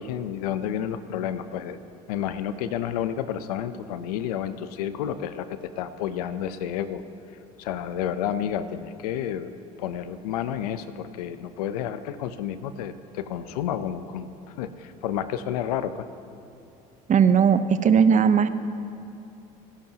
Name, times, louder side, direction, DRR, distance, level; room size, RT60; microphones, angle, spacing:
voice 1, 0.0-1.8 2.1-7.0 7.6-9.5 9.8-16.1, left 9 dB, 90° left, 12 dB, 0.7 m, -30 dB
voice 2, 17.1-18.5, right 7 dB, 40° right, 11 dB, 0.8 m, -18 dB
29.0 x 11.0 x 2.9 m, 2.6 s
hypercardioid pair, 75°, 19 cm